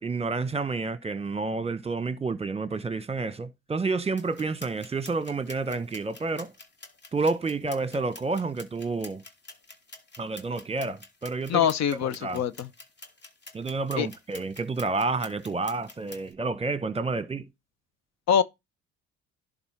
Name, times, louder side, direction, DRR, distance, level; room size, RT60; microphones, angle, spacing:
voice 1, 0.0-6.5 7.1-9.2 10.2-11.7 12.0-12.4 13.5-17.5, right 3 dB, 20° right, 1.2 m, -29 dB
sound 1, 4.2-16.3, left 2 dB, 35° left, 2.6 m, -48 dB
voice 2, 11.5-12.7 14.0-14.1 18.3-18.4, left 8 dB, 65° left, 0.9 m, -24 dB
11.0 x 4.0 x 5.8 m
supercardioid pair, 75°, 30 cm